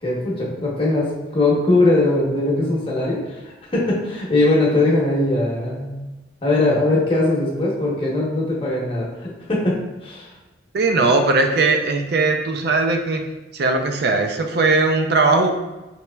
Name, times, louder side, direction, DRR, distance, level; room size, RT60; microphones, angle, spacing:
voice 1, 0.0-3.4 3.7-5.9 6.4-10.3, left 2 dB, 30° left, -4 dB, 0.9 m, -20 dB
voice 2, 10.7-13.2 13.6-15.5, right 3 dB, 60° right, 5 dB, 0.4 m, -19 dB
4.4 x 2.9 x 2.2 m, 1.1 s
head